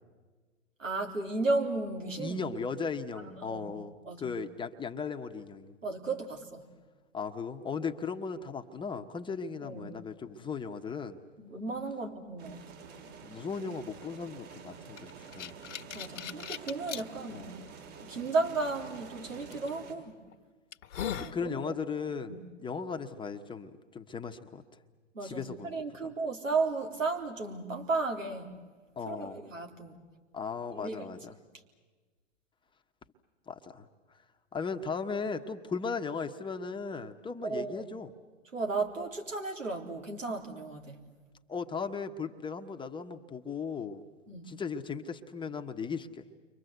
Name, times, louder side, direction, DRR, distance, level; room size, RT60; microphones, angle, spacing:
voice 1, 0.8-2.4 3.1-3.7 4.0-4.3 5.8-6.6 9.6-10.0 11.4-12.6 15.9-17.5 18.0-20.2 21.2-21.7 22.3-22.4 25.1-28.5 29.1-30.0 30.7-31.1 37.4-37.9 38.5-41.0 44.3-44.5, right 3 dB, 90° right, 2 dB, 3.9 m, -34 dB
voice 2, 2.2-5.8 7.1-11.2 13.2-15.5 17.3-17.5 21.2-24.6 25.2-25.8 29.0-29.4 30.3-31.3 33.5-33.8 34.5-38.1 41.5-44.0 44.4-46.2, left 5 dB, 10° left, 5 dB, 1.1 m, -37 dB
sound 1, 12.4-19.9, right 5 dB, 60° right, 6.4 m, -48 dB
sound 2, 15.0-17.0 17.7-17.8 19.5-19.7 20.3-20.4 20.7-21.4, left 9 dB, 65° left, 1.5 m, -38 dB
30.0 x 24.5 x 8.1 m, 1.4 s
hypercardioid pair, 110°, 38 cm